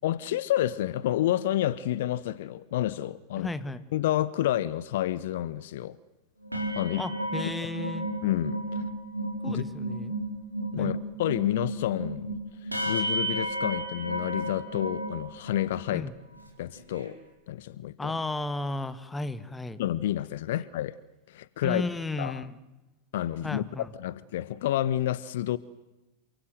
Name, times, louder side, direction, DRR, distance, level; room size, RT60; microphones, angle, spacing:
voice 1, 0.0-3.5 3.9-6.0 6.7-7.0 8.2-8.9 9.4-9.6 10.7-16.1 16.6-17.2 17.5-18.1 19.8-21.0 21.3-21.8 22.2-22.4 23.1-23.6 24.0-25.6, left 13 dB, 55° left, 0.8 m, -29 dB
voice 2, 3.4-3.8 7.0-8.1 9.4-10.1 10.8-10.9 15.9-16.1 18.0-19.8 20.5-20.6 21.6-22.6 23.4-23.9, left 2 dB, 10° left, 1.6 m, -34 dB
sound 1, 6.4-15.9 16.3-16.5 16.8-17.1, right 1 dB, 85° right, 4.6 m, -33 dB
28.5 x 24.0 x 7.9 m
figure-of-eight pair, 90°, 0 cm